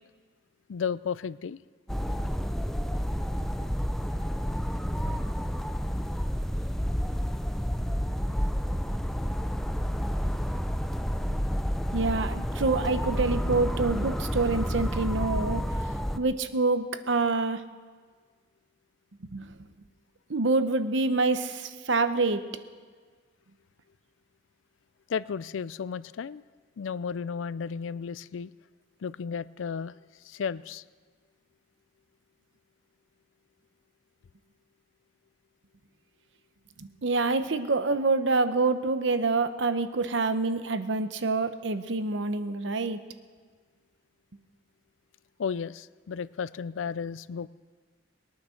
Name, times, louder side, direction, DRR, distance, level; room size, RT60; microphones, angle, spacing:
voice 1, 0.7-1.6 25.1-26.4 26.8-28.5 29.0-30.0 30.2-30.8 45.4-47.5, left 6 dB, 85° left, 18 dB, 0.4 m, -33 dB
sound 1, 1.9-16.2, equal, ahead, 0.5 m, -30 dB
voice 2, 11.9-17.6 19.3-19.5 20.3-22.5 36.8-43.0, right 3 dB, 65° right, 10 dB, 0.8 m, -27 dB
20.5 x 9.5 x 6.4 m, 1.5 s
head